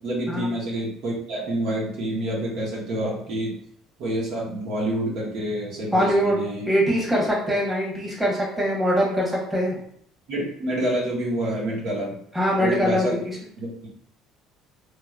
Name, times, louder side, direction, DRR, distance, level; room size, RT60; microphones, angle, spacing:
voice 1, 0.0-3.6 4.0-6.7 10.3-12.2 12.6-13.2 13.6-13.9, right 1 dB, 65° right, -4 dB, 1.2 m, -27 dB
voice 2, 5.9-6.4 6.7-9.8 12.3-13.2, equal, 10° right, -5 dB, 1.2 m, -22 dB
3.2 x 2.9 x 2.4 m, 0.64 s
supercardioid pair, 95°, 0 cm